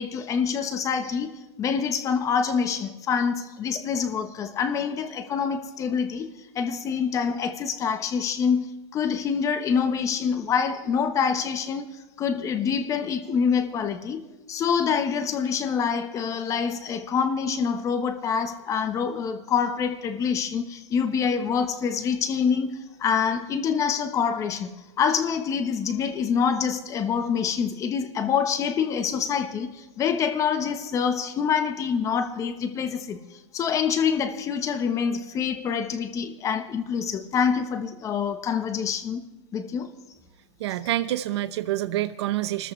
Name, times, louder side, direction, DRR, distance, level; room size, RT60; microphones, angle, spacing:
voice 1, 0.0-6.3 6.5-14.2 14.5-33.2 33.5-39.2 39.5-39.9, left 6 dB, 20° left, 1.1 m, -26 dB
voice 2, 40.6-42.7, right 14 dB, 65° right, 0.7 m, -27 dB
26.5 x 13.5 x 3.3 m
supercardioid pair, 150°, 15 cm